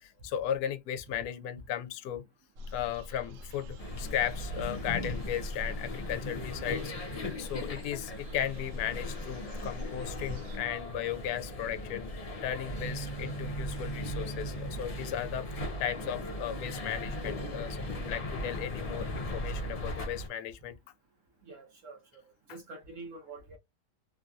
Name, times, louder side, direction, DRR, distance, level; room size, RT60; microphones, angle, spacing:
voice 1, 0.0-2.2 2.7-20.8 22.5-22.6, left 10 dB, 75° left, 1.0 m, -36 dB
sound 1, 2.6-10.6, left 2 dB, 85° right, 1.2 m, -44 dB
sound 2, 3.8-20.3, left 1 dB, 55° left, 0.4 m, -39 dB
voice 2, 7.9-8.3 21.4-22.2 22.5-23.6, right 3 dB, 65° right, 0.8 m, -47 dB
sound 3, 12.6-19.4, right 4 dB, 15° left, 1.1 m, -41 dB
3.2 x 2.6 x 2.2 m
omnidirectional pair, 1.8 m